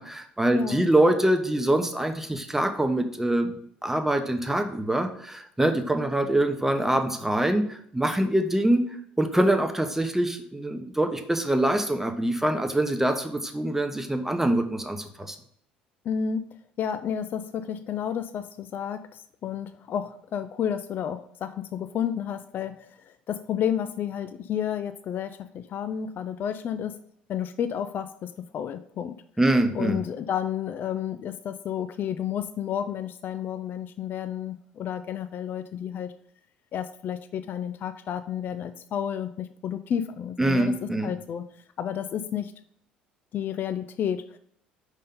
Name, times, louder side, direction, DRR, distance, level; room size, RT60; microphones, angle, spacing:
voice 1, 0.0-3.5 3.8-8.8 9.2-15.4 29.4-30.0 40.4-41.1, right 1 dB, 10° right, 6 dB, 0.9 m, -24 dB
voice 2, 0.5-0.9 16.0-16.4 16.8-27.0 27.3-29.1 29.7-36.1 36.7-42.5 43.3-44.4, left 9 dB, 45° left, 11 dB, 0.4 m, -31 dB
5.3 x 3.6 x 5.3 m, 0.65 s
hypercardioid pair, 60°, 5 cm